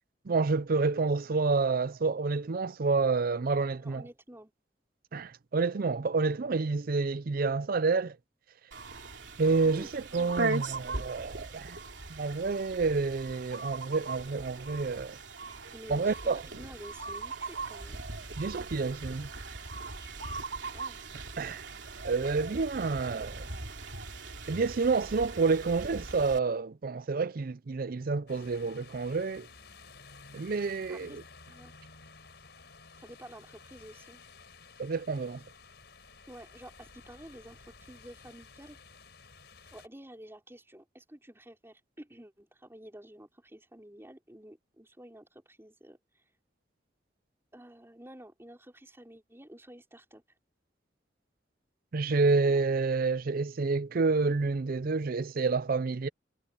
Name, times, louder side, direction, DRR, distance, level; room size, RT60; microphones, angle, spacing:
voice 1, 0.2-4.0 5.1-8.2 9.4-11.8 12.1-15.2 15.9-16.4 18.4-19.3 21.4-21.7 22.0-23.5 24.5-29.5 30.3-31.1 34.8-35.4 51.9-56.1, right 4 dB, 55° right, 0.5 m, -29 dB
voice 2, 3.8-4.5 9.6-9.9 15.7-18.0 20.6-21.0 30.9-31.2 31.5-31.7 33.0-34.2 36.3-38.8 39.7-46.2 47.5-50.2, right 1 dB, 15° right, 4.2 m, -50 dB
sound 1, 8.7-26.4, right 3 dB, 85° right, 3.0 m, -39 dB
sound 2, 28.3-39.9, left 4 dB, 65° left, 6.2 m, -53 dB
head